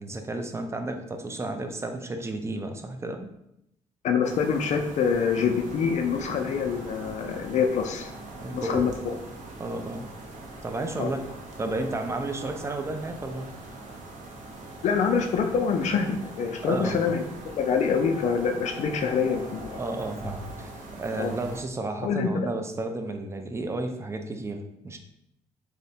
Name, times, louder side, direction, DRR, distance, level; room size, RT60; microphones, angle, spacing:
voice 1, 0.0-3.3 8.4-8.9 9.6-10.1 10.6-11.2 11.6-13.5 16.6-17.0 19.8-25.0, right 2 dB, 20° right, 6 dB, 0.4 m, -32 dB
voice 2, 4.0-8.1 8.5-9.1 11.0-11.1 14.8-17.2 17.5-19.8 21.2-21.3 22.0-22.5, left 6 dB, 60° left, 4 dB, 0.4 m, -25 dB
sound 1, 4.2-21.6, right 2 dB, 65° right, 0.6 m, -41 dB
2.6 x 2.0 x 2.7 m, 0.80 s
supercardioid pair, 60°, 14 cm